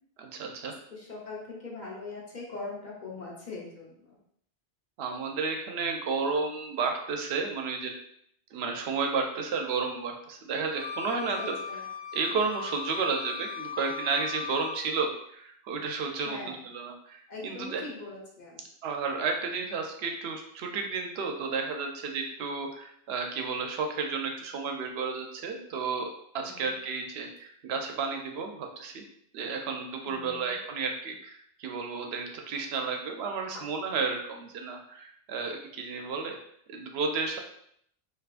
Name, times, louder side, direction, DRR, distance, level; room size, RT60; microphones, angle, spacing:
voice 1, 0.2-0.7 5.0-7.9 8.5-11.4 12.1-17.8 18.8-26.1 26.3-29.0 29.3-36.4 36.7-37.4, right 4 dB, 80° right, 3 dB, 0.8 m, -32 dB
voice 2, 0.9-4.2 11.1-11.8 16.2-16.6 17.3-18.6 26.4-26.7 30.0-30.6, left 3 dB, 50° left, -4 dB, 0.9 m, -41 dB
Wind instrument woodwind instrument, 10.7-14.8, left 6 dB, 75° left, 1.3 m, -38 dB
3.5 x 2.6 x 2.4 m, 0.70 s
omnidirectional pair, 1.1 m